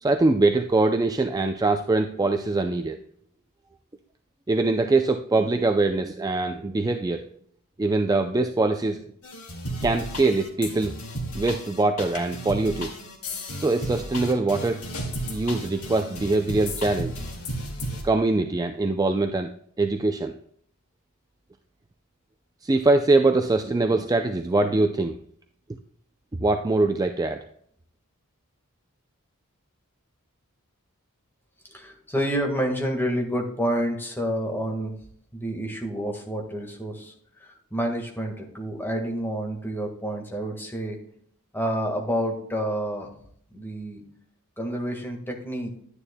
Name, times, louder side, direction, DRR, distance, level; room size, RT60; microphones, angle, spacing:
voice 1, 0.0-3.0 4.5-7.3 7.8-9.0 9.8-10.9 11.3-12.9 13.6-14.8 15.3-17.1 18.0-19.5 19.8-20.4 22.6-25.2 26.4-27.4, right 2 dB, 15° right, 6 dB, 0.4 m, -23 dB
sound 1, 9.2-18.0, equal, 70° left, 2.1 m, -34 dB
voice 2, 31.7-34.9 35.3-37.1 37.4-41.0 41.5-43.1 43.5-44.0 44.6-45.7, equal, 10° left, 2 dB, 1.5 m, -29 dB
10.5 x 9.8 x 2.2 m, 0.64 s
head